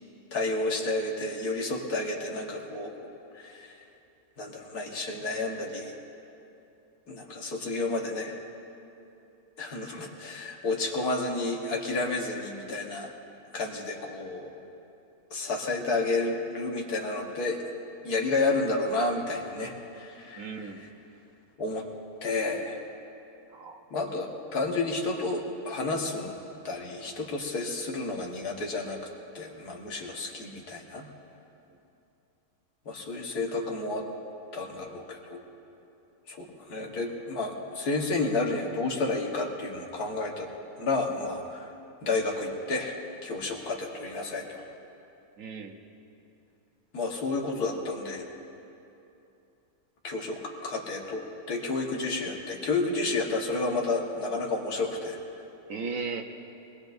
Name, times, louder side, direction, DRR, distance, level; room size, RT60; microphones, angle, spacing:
voice 1, 0.3-3.8 4.4-5.9 7.1-8.3 9.6-13.1 13.5-14.5 15.3-17.6 18.0-20.9 21.6-21.8 22.2-22.8 23.9-26.3 26.6-29.0 29.3-31.1 32.9-34.1 34.5-35.4 36.3-40.5 40.8-41.7 42.0-43.0 43.2-44.7 46.9-48.3 50.0-55.2, left 3 dB, 85° left, -1 dB, 2.0 m, -31 dB
voice 2, 20.4-20.8 23.5-23.8 36.7-37.0 45.4-45.8 55.7-56.2, right 4 dB, 65° right, 4 dB, 1.3 m, -36 dB
22.5 x 19.5 x 2.6 m, 2.8 s
omnidirectional pair, 1.6 m